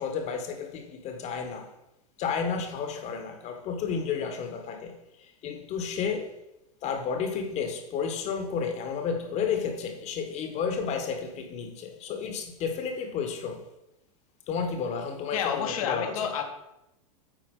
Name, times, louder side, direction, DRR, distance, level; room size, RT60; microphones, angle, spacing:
voice 1, 0.0-1.7 2.2-6.3 6.8-13.6 14.5-16.3, left 6 dB, 35° left, 1.4 m, -32 dB
voice 2, 15.3-16.4, left 8 dB, 70° left, 1.5 m, -29 dB
8.7 x 4.4 x 5.4 m
hypercardioid pair, 125°, 19 cm